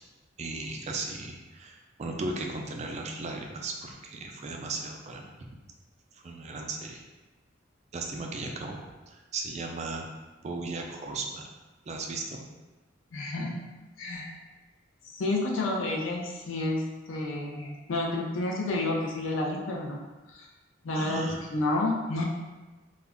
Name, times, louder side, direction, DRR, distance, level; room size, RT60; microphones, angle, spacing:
voice 1, 0.4-5.6 6.2-7.0 7.9-10.1 10.4-11.5 11.9-12.4 20.9-21.5, right 3 dB, 35° right, 1 dB, 0.3 m, -36 dB
voice 2, 13.1-13.6 14.0-14.3 15.0-16.8 17.1-20.0 20.3-20.5 20.8-22.2, left 2 dB, 85° left, -1 dB, 0.5 m, -30 dB
2.3 x 2.1 x 3.5 m, 1.2 s
head